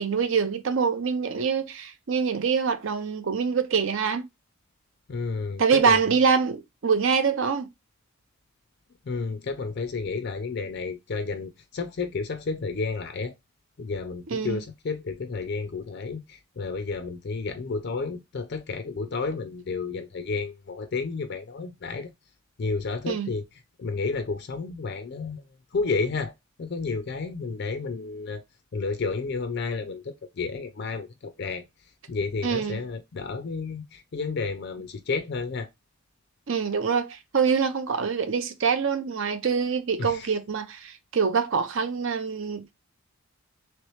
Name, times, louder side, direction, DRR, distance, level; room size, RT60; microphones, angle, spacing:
voice 1, 0.0-4.2 5.6-7.7 14.3-14.6 23.1-23.3 32.4-32.8 36.5-42.7, right 6 dB, 60° right, 0.5 m, -25 dB
voice 2, 5.1-6.0 9.0-13.3 13.8-22.1 22.6-23.4 23.8-25.4 25.7-28.4 28.7-31.6 32.1-35.7 40.0-40.3, left 4 dB, 50° left, 0.4 m, -31 dB
3.1 x 3.0 x 3.0 m
head